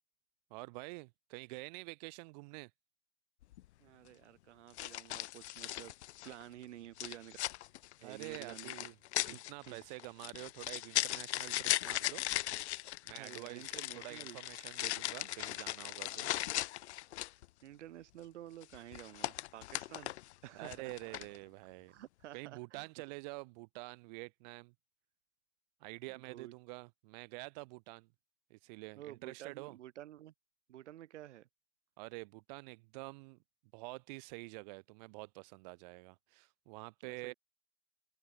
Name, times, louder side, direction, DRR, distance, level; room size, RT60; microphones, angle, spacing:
voice 1, 0.5-2.7 8.0-8.9 9.3-12.2 13.0-16.3 20.5-21.9 22.3-24.7 25.8-28.1 28.5-29.8 32.0-33.4 33.7-37.3, right 27 dB, 35° right, 0.7 m, -47 dB
sound 1, 3.4-3.6 4.8-6.4 7.0-17.5 18.6-20.3 20.6-21.4, left 15 dB, 60° left, 1.5 m, -38 dB
voice 2, 3.8-5.9 6.2-7.4 8.0-8.7 9.2-9.8 13.1-14.4 17.6-20.1 20.4-21.2 21.9-22.8 26.1-26.5 29.0-30.3 30.7-31.5 37.0-37.3, right 13 dB, 65° right, 4.8 m, -51 dB
open air
hypercardioid pair, 140°, 38 cm